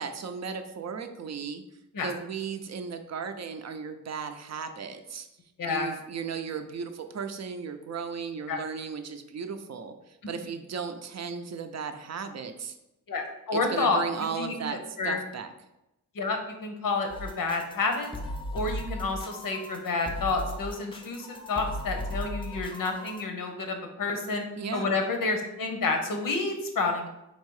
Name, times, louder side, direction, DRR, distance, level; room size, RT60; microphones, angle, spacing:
voice 1, 0.0-1.6 2.0-5.3 5.7-12.8 13.5-15.5 24.6-24.9, right 6 dB, 55° right, 7 dB, 0.5 m, -36 dB
voice 2, 5.6-5.9 8.5-8.6 13.1-14.0 14.4-14.6 15.0-15.2 16.1-18.1 18.5-24.4 24.7-27.1, left 3 dB, 90° left, 4 dB, 0.8 m, -29 dB
sound 1, 17.1-23.2, left 1 dB, 15° left, 0.4 m, -37 dB
4.1 x 2.7 x 4.7 m, 0.90 s
wide cardioid pair, 135°, 33 cm